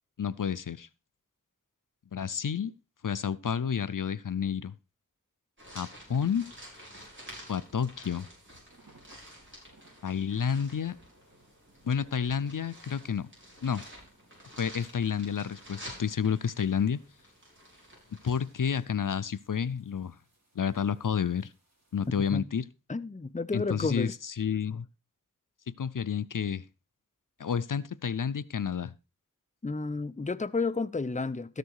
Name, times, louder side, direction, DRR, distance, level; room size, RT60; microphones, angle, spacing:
voice 1, 0.2-0.9 2.1-2.7 3.0-4.7 5.7-6.5 7.5-8.3 10.0-11.0 11.8-13.3 13.6-13.8 14.6-17.0 18.2-20.2 20.6-21.5 21.9-22.6 23.5-24.9 25.8-26.6 27.4-28.9, left 7 dB, 75° left, 0.5 m, -30 dB
sound 1, 5.6-18.8, equal, 35° right, 6.1 m, -50 dB
sound 2, 8.7-22.3, right 2 dB, 55° right, 4.1 m, -65 dB
voice 2, 22.9-24.1 29.6-31.6, left 3 dB, 25° left, 0.6 m, -31 dB
13.5 x 6.8 x 4.7 m
wide cardioid pair, 45°, 32 cm